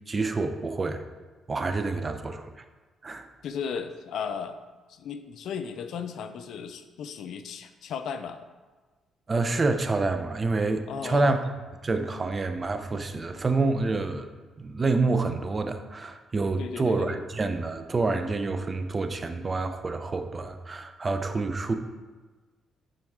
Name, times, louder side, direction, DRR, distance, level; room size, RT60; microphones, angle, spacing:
voice 1, 0.1-1.0 1.5-2.6 3.0-3.3 9.3-11.4 11.8-14.3 14.6-21.7, right 3 dB, 30° right, 8 dB, 0.6 m, -27 dB
voice 2, 3.4-4.6 4.9-8.5 10.9-11.4 16.6-17.2, left 6 dB, 75° left, 10 dB, 0.5 m, -35 dB
9.1 x 4.5 x 3.6 m, 1.3 s
cardioid pair, 90°, 0 cm